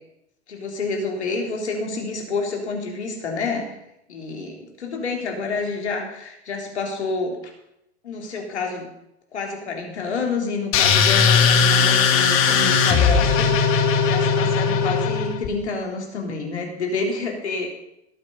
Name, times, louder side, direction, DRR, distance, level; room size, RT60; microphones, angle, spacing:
voice 1, 0.5-3.7 4.1-7.4 8.0-8.9 9.3-13.5 14.0-17.7, left 3 dB, 75° left, 1 dB, 3.7 m, -28 dB
sound 1, 10.7-15.5, left 6 dB, 40° left, 2.2 m, -18 dB
18.5 x 8.9 x 5.4 m, 0.82 s
figure-of-eight pair, 90°, 34 cm